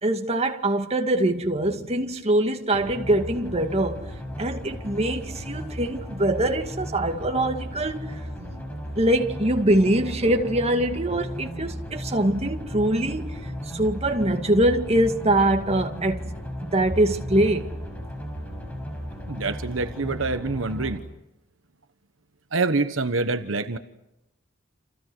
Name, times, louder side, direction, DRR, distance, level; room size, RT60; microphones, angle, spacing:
voice 1, 0.0-4.1 4.4-8.1 9.0-13.3 13.7-16.3 16.6-17.7, right 1 dB, 30° right, 2.3 m, -23 dB
sound 1, 2.7-21.0, equal, 5° left, 6.3 m, -35 dB
voice 2, 19.3-21.0 22.5-23.8, right 3 dB, 75° right, 1.3 m, -26 dB
30.0 x 28.0 x 6.3 m
head